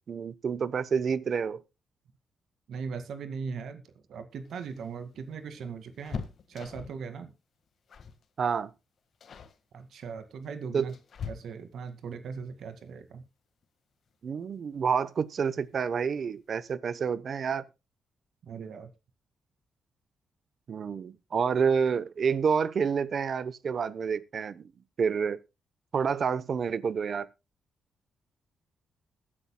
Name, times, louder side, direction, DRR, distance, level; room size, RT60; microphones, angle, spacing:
voice 1, 0.1-1.6 8.4-8.7 10.7-10.9 14.2-17.6 20.7-24.7 25.0-25.4 25.9-27.3, right 6 dB, 50° right, 0.8 m, -28 dB
voice 2, 2.7-3.8 4.1-7.3 9.7-10.9 11.3-13.2 18.4-18.9, right 5 dB, 70° right, 2.0 m, -39 dB
sound 1, 4.4-7.1 7.9-8.2 8.5-8.8 9.2-9.6 10.4-11.9 13.6-13.7 14.1-14.2 15.4-15.8 16.1-16.2 16.5-16.7, left 6 dB, 55° left, 1.6 m, -42 dB
22.0 x 9.9 x 2.2 m
cardioid pair, 115°, 0 cm